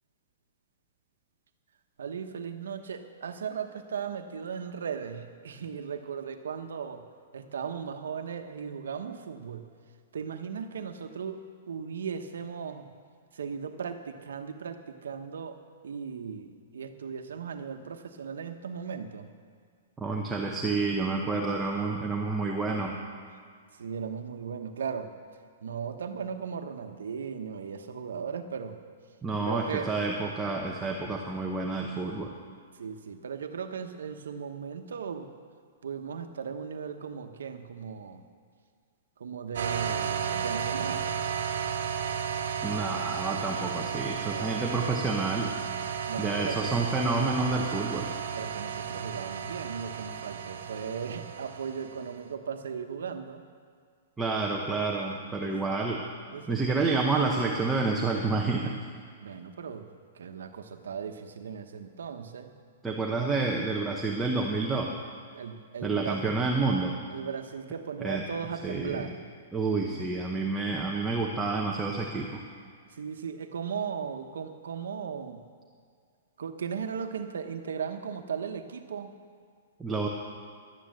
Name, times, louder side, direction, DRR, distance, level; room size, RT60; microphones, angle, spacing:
voice 1, 2.0-7.0 7.3-9.6 10.1-12.8 13.3-15.6 15.8-19.3 23.8-25.1 25.6-28.8 29.4-29.9 32.8-35.3 35.8-38.2 39.2-41.0 44.2-44.7 46.1-46.8 48.3-53.4 55.4-55.6 56.3-56.9 59.2-59.9 60.1-62.5 65.3-66.2 67.1-69.2 73.0-75.4 76.4-79.1, right 6 dB, 90° right, 7 dB, 1.0 m, -37 dB
voice 2, 20.0-22.9 29.2-32.3 42.6-45.5 46.2-48.1 54.2-56.0 56.5-58.7 62.8-64.9 65.8-66.9 68.0-68.2 68.6-69.1 69.5-72.4 79.8-80.1, right 3 dB, 5° right, -1 dB, 0.9 m, -29 dB
sound 1, 39.5-52.1, right 7 dB, 70° right, 1.2 m, -33 dB
11.5 x 9.4 x 7.7 m, 2.1 s
hypercardioid pair, 160°, 0 cm